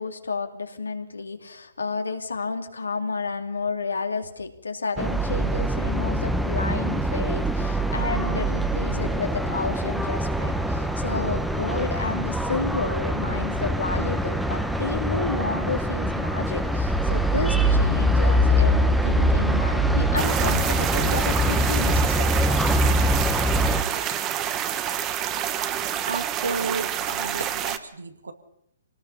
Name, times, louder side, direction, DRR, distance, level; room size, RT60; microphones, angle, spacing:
voice 1, 0.0-22.4, left 4 dB, 90° left, 5 dB, 2.6 m, -31 dB
sound 1, 5.0-23.8, right 1 dB, ahead, 1.2 m, -23 dB
sound 2, 20.2-27.8, right 10 dB, 25° right, 1.4 m, -28 dB
voice 2, 26.1-28.3, right 4 dB, 85° right, 8 dB, 2.3 m, -32 dB
25.5 x 19.0 x 5.7 m, 0.76 s
hypercardioid pair, 130°, 0 cm